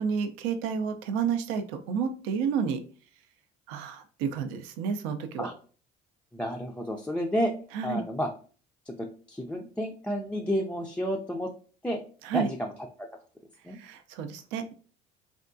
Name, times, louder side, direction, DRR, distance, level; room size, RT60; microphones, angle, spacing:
voice 1, 0.0-2.8 3.7-5.5 7.7-8.0 12.2-12.5 13.7-14.7, right 6 dB, 90° right, 8 dB, 0.5 m, -30 dB
voice 2, 6.3-7.5 7.8-8.3 8.9-11.5 11.8-12.0 12.3-12.7 13.0-13.1 13.6-13.8, equal, 5° left, 0 dB, 0.3 m, -31 dB
3.5 x 2.3 x 2.5 m, 0.40 s
supercardioid pair, 95°, 20 cm